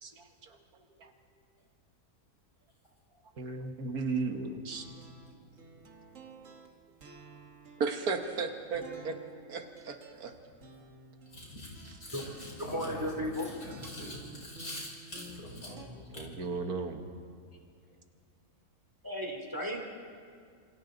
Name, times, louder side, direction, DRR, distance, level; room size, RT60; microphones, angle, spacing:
voice 1, 0.0-1.1 3.4-4.9 7.8-9.2 9.5-10.3 16.2-17.1, right 4 dB, 75° right, 5 dB, 1.9 m, -35 dB
sound 1, 4.7-15.9, right 3 dB, 55° right, 1.8 m, -52 dB
voice 2, 11.3-16.4, left 1 dB, 80° left, -3 dB, 6.0 m, -44 dB
voice 3, 12.6-13.5 19.0-19.8, equal, 15° right, 1 dB, 2.9 m, -34 dB
27.5 x 25.5 x 4.0 m, 2.2 s
omnidirectional pair, 1.6 m